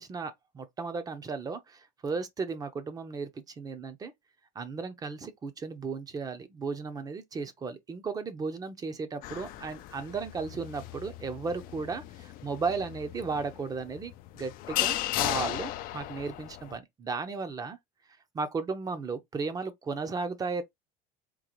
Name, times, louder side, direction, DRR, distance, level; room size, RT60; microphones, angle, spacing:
voice 1, 0.0-4.1 4.5-17.8 18.3-20.6, right 4 dB, 20° right, 0.6 m, -35 dB
sound 1, 9.2-16.8, left 15 dB, 55° left, 0.4 m, -36 dB
3.8 x 2.5 x 3.0 m
cardioid pair, 140°, 17 cm